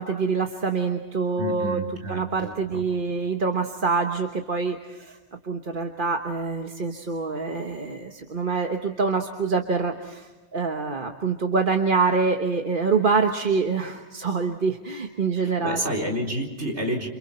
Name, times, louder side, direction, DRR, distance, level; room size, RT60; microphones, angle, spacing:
voice 1, 0.0-1.8 2.1-5.2 5.4-15.8, right 4 dB, 50° right, 4 dB, 1.5 m, -25 dB
voice 2, 1.4-2.8 15.4-17.1, equal, 85° right, -1 dB, 4.5 m, -30 dB
29.0 x 27.0 x 4.4 m, 1.2 s
omnidirectional pair, 1.1 m